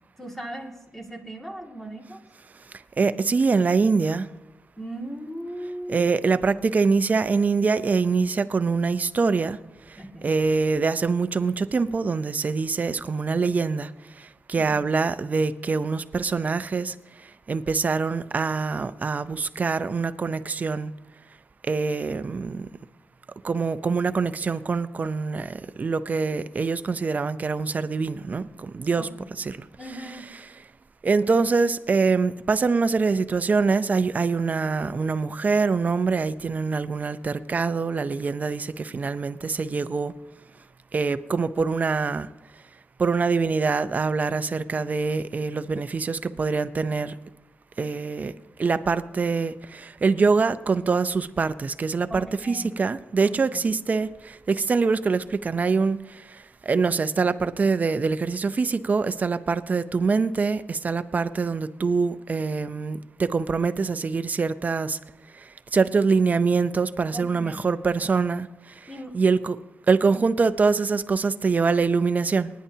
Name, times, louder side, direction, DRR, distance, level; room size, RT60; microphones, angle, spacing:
voice 1, 0.2-2.2 4.8-6.1 10.0-10.4 29.0-29.3 29.8-30.3 52.1-52.8 53.2-53.6 67.1-67.7 68.9-69.2 70.1-70.2, right 1 dB, 5° left, 0 dB, 2.1 m, -38 dB
voice 2, 3.0-4.3 5.9-9.6 10.2-13.9 14.5-16.9 17.5-20.9 21.7-22.7 23.4-29.1 29.4-29.6 31.0-40.1 40.9-42.3 43.0-47.1 47.8-48.3 48.6-56.0 56.7-65.0 65.7-68.5 69.1-69.6 69.9-72.5, right 4 dB, 40° right, 12 dB, 0.6 m, -24 dB
27.0 x 10.0 x 2.8 m, 1.1 s
cardioid pair, 90°, 4 cm